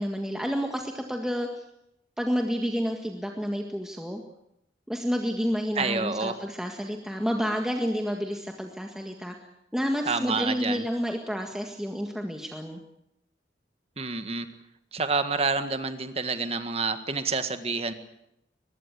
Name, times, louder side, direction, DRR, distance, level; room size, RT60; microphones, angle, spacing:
voice 1, 0.0-1.5 2.2-4.2 4.9-9.3 9.7-12.8, equal, 5° right, 2 dB, 1.8 m, -30 dB
voice 2, 5.8-6.4 10.1-10.9 14.0-14.5 14.9-17.9, right 4 dB, 35° right, 9 dB, 1.7 m, -28 dB
23.0 x 21.0 x 8.3 m, 0.82 s
head